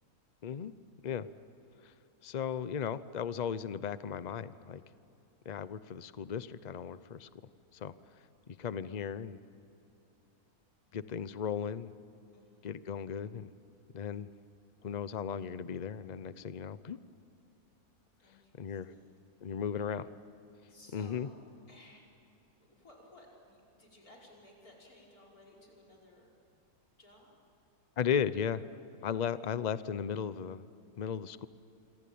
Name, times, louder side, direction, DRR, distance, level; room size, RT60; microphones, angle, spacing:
voice 1, 2.2-4.8 5.4-7.3 7.7-7.9 8.6-9.4 10.9-11.9 12.6-13.5 13.9-14.3 14.8-17.0 18.6-18.9 19.4-20.1 20.9-21.3 28.0-28.6 29.0-30.7 31.0-31.5, left 7 dB, 40° left, 15 dB, 0.6 m, -36 dB
voice 2, 12.3-12.7 18.2-19.9 20.7-21.4 21.7-22.0 22.7-26.3 27.0-27.4, left 1 dB, 70° left, -1 dB, 5.8 m, -58 dB
26.5 x 26.0 x 8.6 m, 2.8 s
omnidirectional pair, 1.6 m